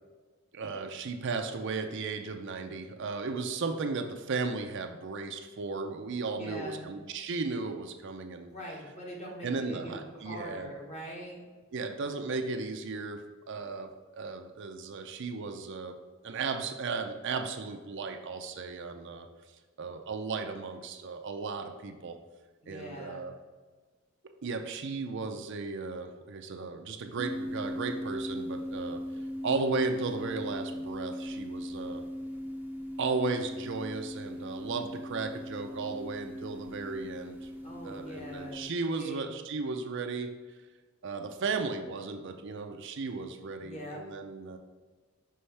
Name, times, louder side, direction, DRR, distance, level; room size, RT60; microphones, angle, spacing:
voice 1, 0.5-8.5 9.4-10.7 11.7-16.0 16.2-19.3 19.8-22.2 22.7-23.3 24.4-29.0 29.4-32.0 33.0-37.5 37.8-40.3 41.0-44.6, right 4 dB, 55° right, 6 dB, 0.5 m, -35 dB
voice 2, 6.3-6.9 8.5-11.4 22.6-23.3 37.6-39.4 43.6-44.0, equal, 30° left, -2 dB, 1.2 m, -43 dB
sound 1, 27.2-38.7, equal, 10° right, 0.6 m, -39 dB
5.6 x 5.4 x 3.3 m, 1.4 s
head